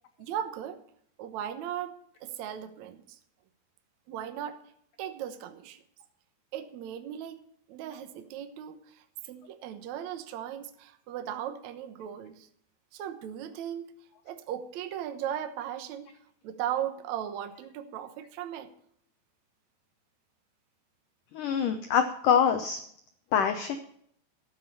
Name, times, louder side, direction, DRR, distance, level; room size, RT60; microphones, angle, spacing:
voice 1, 0.2-0.8 1.2-3.2 4.1-4.6 5.0-5.8 6.5-7.4 7.7-12.5 12.9-13.9 14.2-16.1 16.4-18.7, right 10 dB, 85° right, 8 dB, 1.6 m, -37 dB
voice 2, 21.3-22.8 23.3-23.8, left 8 dB, 80° left, 7 dB, 1.8 m, -25 dB
13.0 x 7.5 x 6.7 m, 0.67 s
omnidirectional pair, 4.9 m